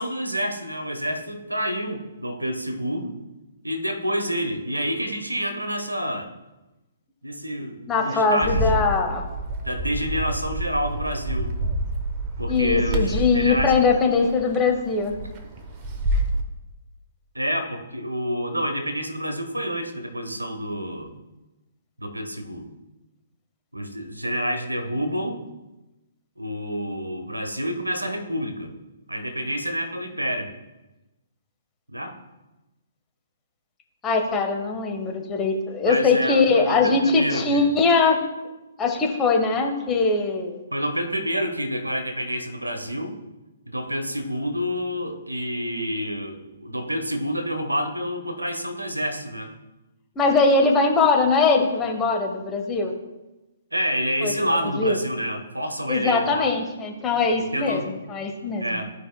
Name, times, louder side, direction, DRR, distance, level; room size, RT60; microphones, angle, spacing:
voice 1, 0.0-3.1 3.6-6.3 7.2-8.8 9.6-11.6 12.4-13.9 17.3-21.1 22.0-22.7 23.7-25.4 26.4-28.7 29.1-30.5 31.9-32.2 35.8-37.7 40.7-43.2 43.7-49.5 53.7-56.5 57.4-57.9 58.6-58.9, equal, 90° right, 6 dB, 1.1 m, -28 dB
voice 2, 7.9-9.2 12.5-15.1 34.0-38.2 38.8-40.6 50.2-52.9 54.2-54.3 54.8-55.0 55.9-58.8, left 4 dB, 15° left, 1 dB, 1.1 m, -21 dB
Bird, 8.4-16.4, right 1 dB, 30° right, 0.9 m, -28 dB
14.5 x 4.9 x 2.2 m, 1.0 s
figure-of-eight pair, 130°, 0 cm